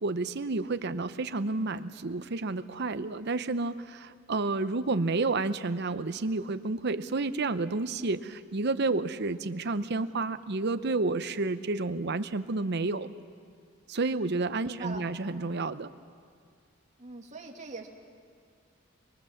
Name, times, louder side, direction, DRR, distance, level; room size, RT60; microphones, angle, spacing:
voice 1, 0.0-13.1 13.9-15.9, right 3 dB, 55° right, 11 dB, 0.8 m, -30 dB
voice 2, 14.6-15.1 17.0-17.9, right 4 dB, 35° right, 1 dB, 2.3 m, -41 dB
25.5 x 22.0 x 7.3 m, 2.1 s
head